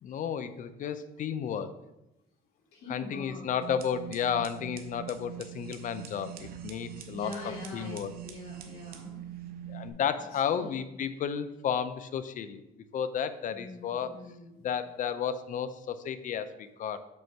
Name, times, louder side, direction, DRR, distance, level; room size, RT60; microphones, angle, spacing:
voice 1, 0.0-1.7 2.9-8.1 9.7-12.6 12.9-14.1 14.6-17.0, left 8 dB, 50° left, 12 dB, 0.6 m, -33 dB
voice 2, 2.7-3.5 7.1-9.2 10.3-10.8 13.5-14.6, left 3 dB, 70° left, -4 dB, 2.3 m, -43 dB
sound 1, 3.6-9.9, right 10 dB, 60° right, 0.8 m, -43 dB
5.4 x 4.4 x 5.9 m, 0.95 s
cardioid pair, 110°, 17 cm